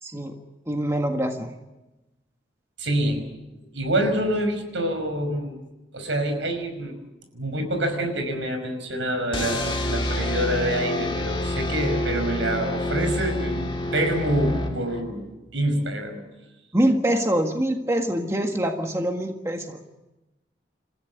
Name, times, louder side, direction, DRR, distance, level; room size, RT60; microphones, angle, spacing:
voice 1, 0.0-0.3 0.7-1.5 16.7-19.8, right 1 dB, 15° right, 3 dB, 1.7 m, -24 dB
voice 2, 2.8-3.2 3.7-5.6 5.9-7.0 7.3-15.3 15.5-16.2, right 1 dB, 75° right, 7 dB, 5.5 m, -26 dB
sound 1, 9.3-15.2, left 1 dB, 25° left, 2.8 m, -28 dB
28.5 x 15.0 x 9.5 m, 1.0 s
head